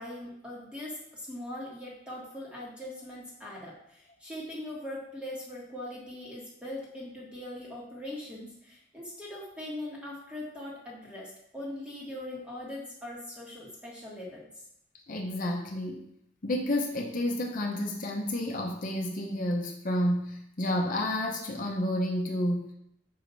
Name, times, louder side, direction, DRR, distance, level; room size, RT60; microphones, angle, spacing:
voice 1, 0.0-14.4, left 1 dB, 5° right, -5 dB, 1.3 m, -41 dB
voice 2, 15.1-16.0 16.4-22.7, left 1 dB, 45° left, 0 dB, 0.8 m, -30 dB
5.6 x 4.8 x 4.0 m, 0.75 s
head